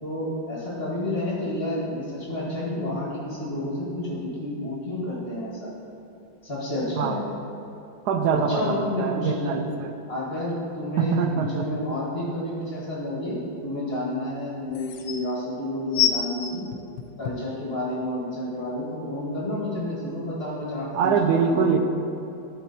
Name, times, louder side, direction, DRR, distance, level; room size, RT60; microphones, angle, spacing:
voice 1, 0.0-5.7 6.4-7.2 8.3-9.6 10.1-16.6 17.2-21.1 21.5-21.8, left 1 dB, 30° left, -6 dB, 2.1 m, -30 dB
voice 2, 8.1-10.0 11.0-11.7 20.9-21.8, right 6 dB, 70° right, 5 dB, 1.1 m, -24 dB
sound 1, 12.6-12.7 14.3-14.4 14.7-15.2 15.9-17.6 18.3-18.4, left 10 dB, 85° left, 1.4 m, -26 dB
11.0 x 4.5 x 4.3 m, 2.8 s
omnidirectional pair, 2.1 m